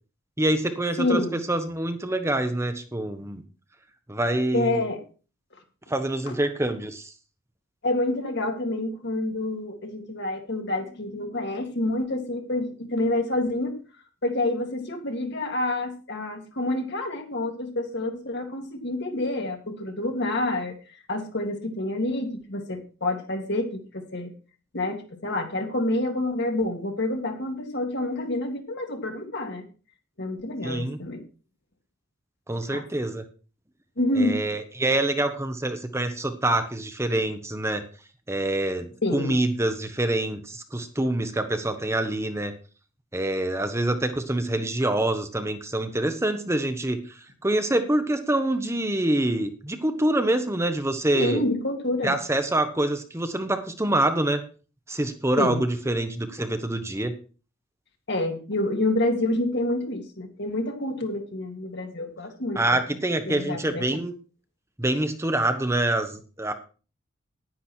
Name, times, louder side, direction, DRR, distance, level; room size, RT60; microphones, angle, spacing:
voice 1, 0.4-3.4 4.1-4.8 5.9-7.1 30.6-31.0 32.5-33.2 34.2-37.8 38.3-42.5 43.1-51.4 52.0-54.4 54.9-57.1 62.5-64.1 64.8-66.1 66.4-66.5, right 1 dB, 15° right, 8 dB, 1.0 m, -26 dB
voice 2, 1.0-1.4 4.5-5.0 6.3-6.4 7.8-13.7 14.2-20.7 21.1-24.3 24.7-29.6 30.2-31.2 32.7-32.8 34.0-34.4 39.0-39.3 51.1-52.2 55.4-55.6 58.1-62.8 63.3-64.0, left 2 dB, 60° left, 4 dB, 2.2 m, -28 dB
10.0 x 10.0 x 4.4 m, 0.36 s
head